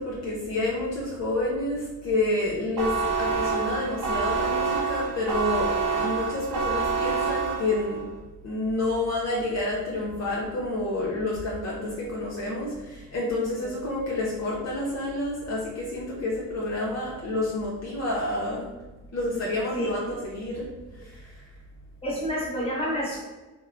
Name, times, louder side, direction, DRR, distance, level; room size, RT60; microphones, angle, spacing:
voice 1, 0.0-2.9 3.2-8.0 8.4-18.7 19.1-20.7 21.0-21.4, left 2 dB, 55° left, -6 dB, 0.6 m, -29 dB
sound 1, 2.8-8.0, right 5 dB, 80° right, 0.6 m, -27 dB
voice 2, 22.0-23.2, equal, 20° left, -6 dB, 1.2 m, -29 dB
2.8 x 2.1 x 2.5 m, 1.1 s
cardioid pair, 85°, 31 cm